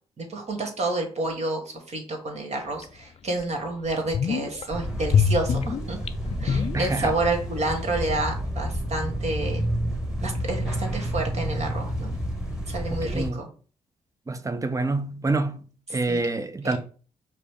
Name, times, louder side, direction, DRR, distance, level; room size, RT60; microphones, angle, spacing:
voice 1, 0.2-6.0 6.4-9.7 10.2-12.1 12.7-13.5 16.1-16.2 16.6-16.8, right 2 dB, 45° right, 1.5 m, -29 dB
sound 1, 2.8-2.9 3.4-3.5 3.9-4.7 5.1-7.3 7.6-7.7, left 7 dB, 40° left, 0.5 m, -25 dB
sound 2, 4.7-13.3, equal, 5° right, 1.4 m, -30 dB
voice 2, 6.7-7.2 12.9-13.4 14.3-16.8, right 3 dB, 20° right, 0.7 m, -27 dB
5.0 x 2.0 x 4.6 m
hypercardioid pair, 40°, 15 cm